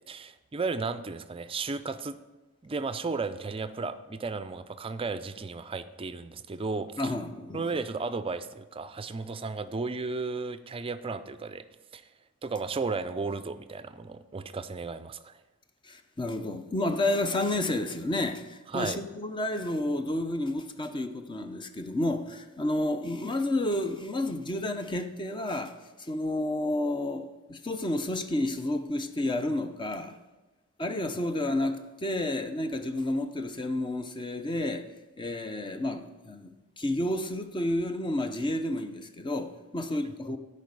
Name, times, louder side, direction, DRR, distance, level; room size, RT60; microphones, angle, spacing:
voice 1, 0.1-2.2 2.6-7.1 7.5-11.6 11.9-12.0 12.4-15.3 18.7-19.0, right 4 dB, 25° right, 0.4 m, -34 dB
voice 2, 7.0-7.7 15.8-30.2 30.8-34.8 35.2-36.5 36.8-40.4, left 1 dB, 20° left, 0.6 m, -30 dB
10.5 x 5.3 x 8.0 m
head